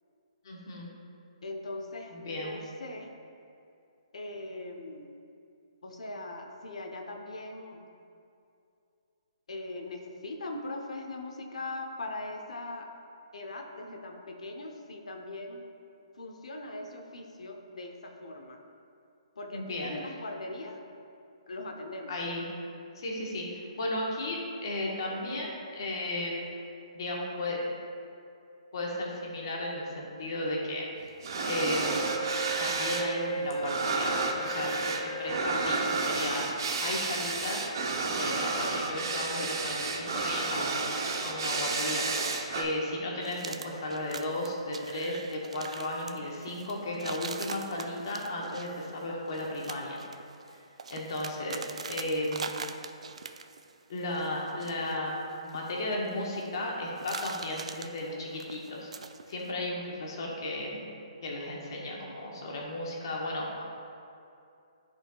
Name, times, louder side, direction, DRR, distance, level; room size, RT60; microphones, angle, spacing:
voice 1, 0.4-0.9 2.1-2.6 19.5-20.0 22.1-22.4 23.0-26.3 26.9-27.6 28.7-30.9 31.5-32.2 32.6-37.7 38.1-42.1 42.5-50.0 50.5-50.6 50.9-52.7 53.9-58.9 59.3-60.9 61.2-63.6, left 1 dB, 40° left, -2 dB, 1.2 m, -34 dB
voice 2, 1.4-3.1 4.1-5.1 5.8-7.8 9.5-12.9 13.3-15.6 16.1-18.6 19.4-20.8 21.5-22.2, left 2 dB, 85° left, 3 dB, 0.9 m, -40 dB
sound 1, 31.2-33.1 33.3-42.6, right 3 dB, 40° right, 0.7 m, -31 dB
Wind instrument woodwind instrument, 31.7-36.1, right 2 dB, 15° left, 0.8 m, -37 dB
sound 2, 43.2-53.7 54.0-56.6 56.9-59.5, right 5 dB, 75° right, 0.4 m, -43 dB
13.0 x 4.4 x 2.3 m, 2.6 s
hypercardioid pair, 175°, 3 cm